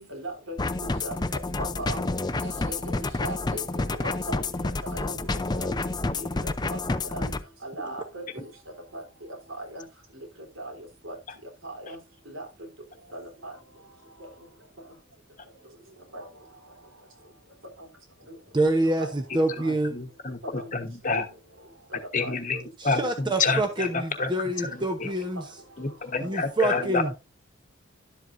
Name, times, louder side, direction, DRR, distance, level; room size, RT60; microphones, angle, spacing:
voice 1, 0.1-0.6 1.0-1.2 1.6-2.0 2.4-3.6 4.0-4.4 4.9-5.1 5.6-5.8 6.1-6.8 7.1-7.3 7.6-8.2 8.9-9.0 9.6-9.8 10.6-10.7 11.0-11.2 11.6-12.0 12.3-12.4 13.1-13.5 16.1-16.3 19.0-19.1 19.6-19.7 20.6-20.7 21.1-21.2 22.2-22.3 23.0-23.1 23.4-23.5 26.8-27.1, right 1 dB, 75° right, 1 dB, 3.6 m, -37 dB
sound 1, 0.6-7.4, left 2 dB, 20° left, 0.5 m, -29 dB
voice 2, 18.5-19.9 22.8-25.4 26.2-27.1, right 1 dB, 20° right, 6 dB, 0.9 m, -26 dB
voice 3, 19.9-20.4 20.7-21.2 22.1-22.6 22.8-24.3 25.0-25.1 25.8-27.1, left 4 dB, 40° left, 6 dB, 1.1 m, -28 dB
11.5 x 7.9 x 2.6 m, 0.24 s
head